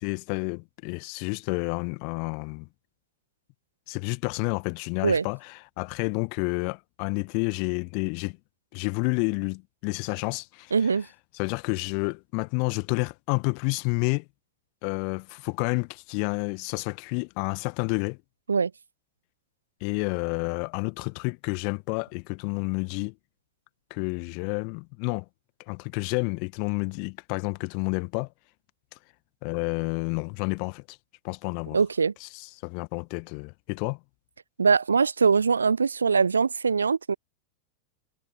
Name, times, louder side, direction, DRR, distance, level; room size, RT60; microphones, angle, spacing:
voice 1, 0.0-2.7 3.9-8.4 8.7-10.7 11.3-14.2 14.8-18.2 19.8-23.1 23.9-25.2 25.7-28.3 29.4-31.0 31.2-31.8 32.2-34.0, left 40 dB or more, 45° left, 1.6 m, -30 dB
voice 2, 10.7-11.1 18.5-18.7 31.7-32.1 34.6-37.1, right 5 dB, 75° right, 0.4 m, -22 dB
figure-of-eight pair, 90°, 0 cm